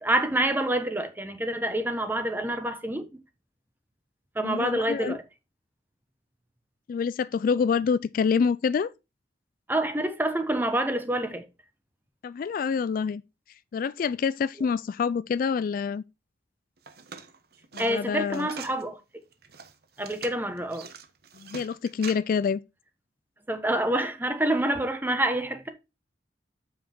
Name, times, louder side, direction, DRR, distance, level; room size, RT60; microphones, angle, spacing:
voice 1, 0.0-3.1 4.3-5.2 9.7-11.5 17.8-19.0 20.0-20.9 23.5-25.7, right 1 dB, 10° right, 1.1 m, -27 dB
voice 2, 4.4-5.2 6.9-8.9 12.2-13.2 13.7-16.0 17.7-18.5 21.3-22.6, left 6 dB, 50° left, 0.3 m, -27 dB
sound 1, 16.8-18.8 19.3-22.1, right 6 dB, 65° right, 1.1 m, -43 dB
7.3 x 5.8 x 4.3 m
head